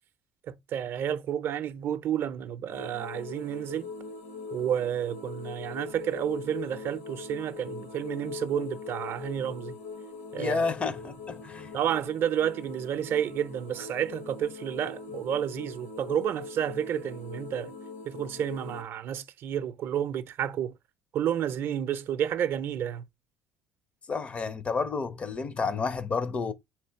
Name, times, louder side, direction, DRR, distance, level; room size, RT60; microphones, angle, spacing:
voice 1, 0.5-3.9 4.5-9.7 10.3-10.6 11.7-17.7 18.1-20.7 21.1-23.0, right 9 dB, 50° right, 0.5 m, -30 dB
sound 1, 2.7-18.8, left 4 dB, 85° left, 1.2 m, -42 dB
voice 2, 10.4-11.7 24.1-26.5, left 4 dB, 25° left, 0.4 m, -30 dB
3.4 x 3.1 x 4.4 m
cardioid pair, 125°, 5 cm